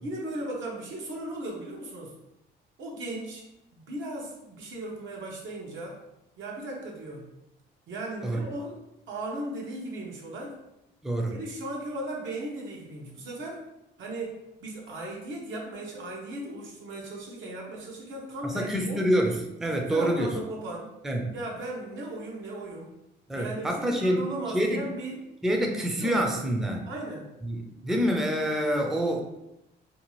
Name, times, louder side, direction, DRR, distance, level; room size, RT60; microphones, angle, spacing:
voice 1, 0.0-2.1 2.8-3.5 3.7-6.0 6.4-7.3 7.9-10.6 11.3-13.7 14.0-19.0 19.7-20.9 21.3-22.9 23.3-25.2 26.0-26.2 26.9-27.3, right 1 dB, 75° right, -2 dB, 0.8 m, -37 dB
voice 2, 11.0-11.4 18.4-20.4 21.0-21.3 23.3-24.2 24.5-24.9 25.4-26.9 27.4-29.2, equal, ahead, 1 dB, 0.4 m, -27 dB
2.7 x 2.3 x 2.9 m, 0.88 s
cardioid pair, 90°, 20 cm